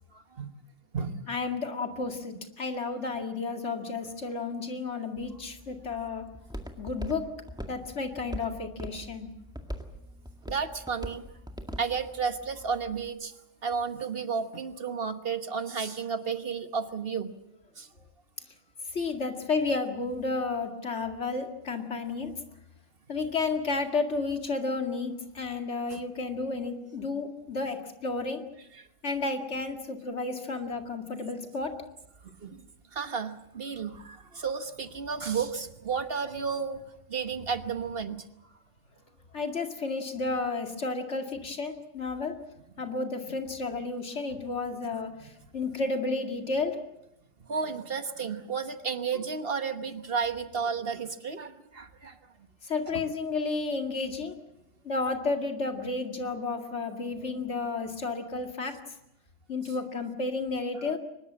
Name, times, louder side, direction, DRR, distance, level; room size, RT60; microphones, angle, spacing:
voice 1, 0.1-0.5 0.9-1.2 10.5-11.2 11.8-13.3 13.6-17.3 17.8-17.9 25.9-26.0 28.8-28.9 32.2-32.6 32.9-36.8 37.1-38.2 47.4-52.2 60.8-60.9, right 5 dB, 50° right, 9 dB, 1.3 m, -32 dB
voice 2, 1.1-6.2 6.8-7.3 7.7-9.3 18.9-22.3 23.1-28.4 29.0-31.8 39.3-42.4 42.8-46.8 52.6-54.4 54.8-58.8 59.5-61.0, left 3 dB, 65° left, 5 dB, 2.5 m, -32 dB
Walk footsteps, 5.2-13.1, equal, 5° right, 2.0 m, -42 dB
23.5 x 21.0 x 7.5 m, 0.83 s
omnidirectional pair, 1.3 m